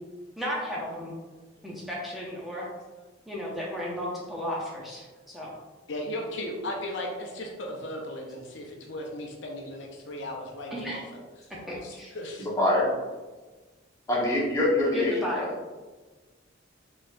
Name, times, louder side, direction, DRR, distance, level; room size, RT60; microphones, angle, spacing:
voice 1, 0.4-1.1 1.6-2.7 3.3-5.5 10.7-11.1 11.5-12.1 14.9-15.5, left 1 dB, ahead, -5 dB, 0.6 m, -34 dB
voice 2, 5.9-11.0 11.8-12.5, left 1 dB, 65° left, 1 dB, 0.6 m, -36 dB
voice 3, 12.4-12.9 14.1-15.5, left 1 dB, 15° left, -6 dB, 1.1 m, -25 dB
4.1 x 3.8 x 2.5 m, 1.2 s
head